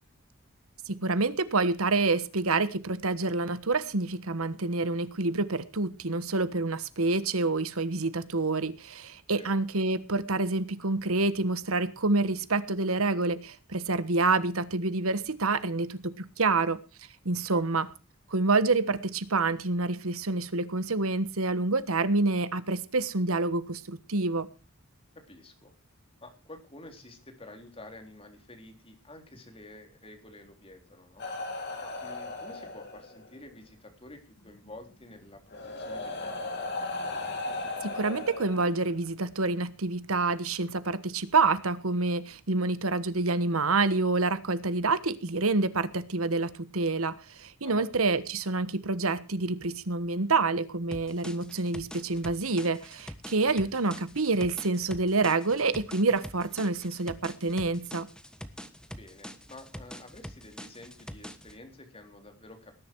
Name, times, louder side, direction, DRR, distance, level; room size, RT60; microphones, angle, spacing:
voice 1, 0.9-16.8 17.2-17.9 18.3-24.5 37.8-58.1, right 3 dB, 80° right, 1.3 m, -27 dB
voice 2, 25.3-25.7 26.2-31.2 31.8-36.7 47.6-47.9 53.5-53.7 58.9-62.7, left 2 dB, 25° left, 3.7 m, -49 dB
sound 1, 31.2-33.3 34.7-34.8 35.5-39.1 40.2-40.4, left 2 dB, 55° left, 3.8 m, -36 dB
sound 2, 50.9-61.6, equal, 5° left, 1.3 m, -44 dB
19.5 x 11.0 x 4.7 m
head